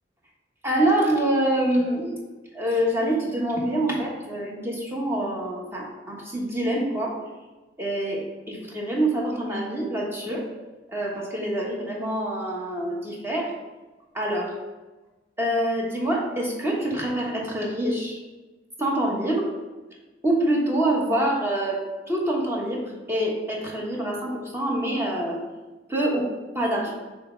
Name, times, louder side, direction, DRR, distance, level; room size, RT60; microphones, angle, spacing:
voice 1, 0.6-2.2 2.5-7.1 7.8-10.4 10.9-13.5 14.1-14.5 15.4-18.2 18.8-19.5 20.2-21.8 22.1-25.4 25.9-26.3 26.5-26.9, right 1 dB, 15° right, -2 dB, 1.2 m, -25 dB
6.4 x 3.3 x 4.4 m, 1.2 s
head